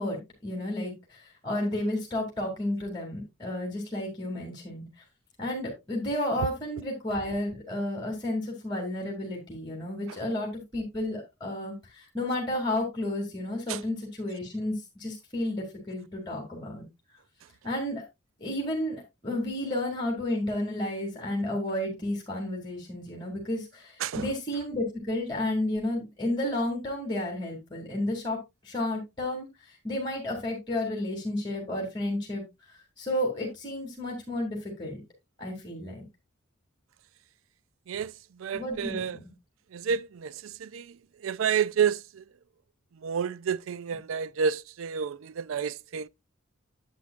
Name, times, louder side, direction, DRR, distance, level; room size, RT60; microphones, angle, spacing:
voice 1, 0.0-4.9 5.4-16.8 17.6-18.0 18.4-32.4 33.0-35.0 35.4-36.0 38.5-39.3, left 1 dB, 20° left, 2.7 m, -32 dB
voice 2, 24.0-24.3 37.9-39.2 39.7-41.0 41.2-42.2 42.9-46.1, right 7 dB, 85° right, 0.4 m, -30 dB
10.0 x 8.6 x 2.4 m
head